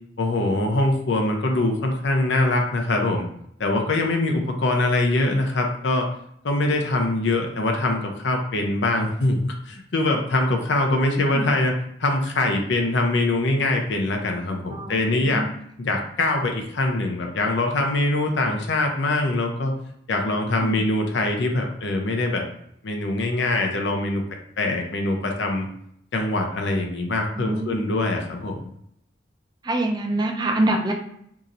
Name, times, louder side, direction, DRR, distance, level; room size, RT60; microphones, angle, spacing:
voice 1, 0.2-3.3 3.6-6.1 6.4-11.7 12.0-15.4 15.8-19.7 20.1-22.4 22.8-24.2 24.6-25.7 26.1-28.7, left 2 dB, 70° left, 3 dB, 0.6 m, -23 dB
voice 2, 10.9-11.5 14.7-15.5 20.6-20.8 27.3-27.8 29.6-30.9, right 1 dB, 20° right, 2 dB, 0.4 m, -26 dB
2.8 x 2.5 x 4.1 m, 0.72 s
head